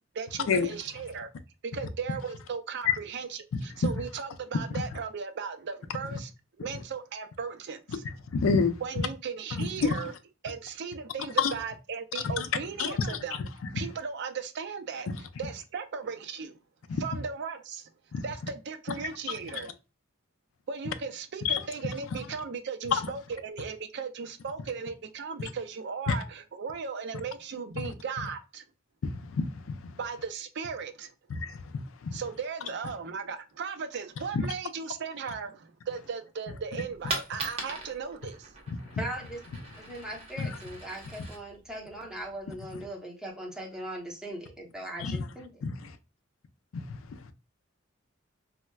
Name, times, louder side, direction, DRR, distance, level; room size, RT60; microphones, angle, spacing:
voice 1, 0.1-1.3 1.6-6.3 6.6-8.0 8.8-10.1 10.4-13.4 13.7-16.6 16.9-17.9 18.2-19.7 20.7-28.6 30.0-31.1 32.1-38.7, right 5 dB, 60° right, 0.5 m, -37 dB
voice 2, 8.3-8.8 9.5-9.9 11.4-11.5 12.4-12.5 12.8-13.2 16.9-17.0 18.1-18.2 21.4-21.6 26.1-26.2 27.8-27.9 29.0-29.5 29.8-29.9 31.3-31.6 32.0-32.1 34.3-34.5 40.4-40.5 45.0-45.2 45.6-45.7, left 5 dB, 85° left, 0.4 m, -27 dB
Coin (dropping), 36.8-42.8, right 2 dB, 30° right, 0.9 m, -41 dB
voice 3, 39.0-39.4 39.8-45.5, right 1 dB, 5° right, 0.9 m, -39 dB
4.1 x 2.1 x 2.2 m
head